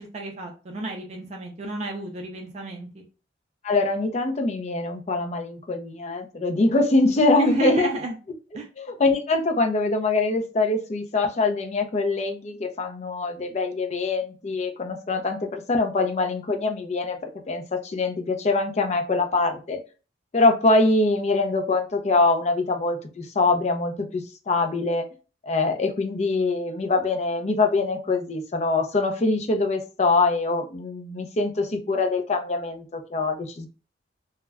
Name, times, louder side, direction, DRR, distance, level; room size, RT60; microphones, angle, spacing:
voice 1, 0.0-3.0 7.4-8.2 8.5-8.7, right 2 dB, 35° right, 2 dB, 0.4 m, -33 dB
voice 2, 3.6-7.9 8.8-17.2 17.5-19.8 20.3-25.0 25.4-33.7, left 3 dB, 40° left, 5 dB, 0.4 m, -23 dB
2.3 x 2.1 x 3.3 m, 0.34 s
head